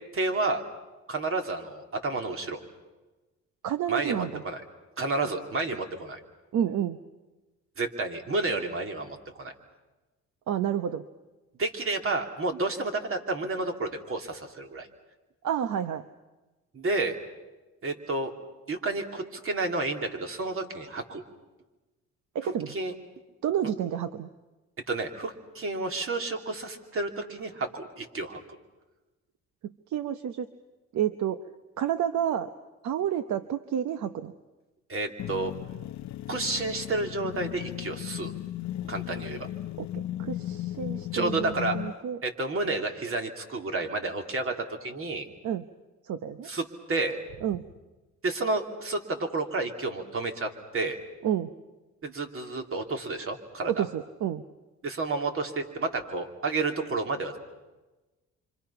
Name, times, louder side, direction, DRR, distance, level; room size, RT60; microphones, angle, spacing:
voice 1, 0.1-0.6 1.1-2.6 3.9-4.6 5.0-6.2 7.8-9.5 11.6-14.9 16.7-17.2 17.8-18.3 18.7-21.2 22.4-22.9 24.9-28.4 34.9-35.5 36.3-38.3 38.9-39.5 41.1-41.8 42.2-45.3 46.4-47.2 48.2-51.0 52.0-53.8 54.8-57.4, right 3 dB, 45° right, 4 dB, 3.0 m, -30 dB
voice 2, 3.6-4.4 6.5-7.0 10.5-11.0 15.4-16.0 22.3-22.7 23.4-24.3 29.6-30.5 30.9-31.5 31.8-32.5 32.8-34.3 39.8-42.2 45.4-45.6 46.0-46.5 47.4-47.6 51.2-51.5 53.7-54.4, right 10 dB, 70° right, 11 dB, 0.9 m, -30 dB
sound 1, 35.2-42.0, left 13 dB, 65° left, 0.7 m, -36 dB
28.0 x 25.5 x 5.8 m, 1.2 s
cardioid pair, 90°, 30 cm